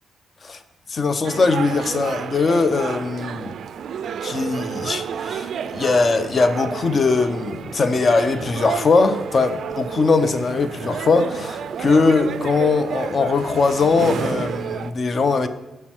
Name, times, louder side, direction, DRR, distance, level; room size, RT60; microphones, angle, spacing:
voice 1, 0.9-3.6 4.2-5.5 5.7-15.5, left 4 dB, 50° left, 10 dB, 0.7 m, -20 dB
sound 1, 1.2-14.9, right 7 dB, 70° right, 0.3 m, -31 dB
6.0 x 4.6 x 6.0 m, 0.96 s
hypercardioid pair, 45°, 0 cm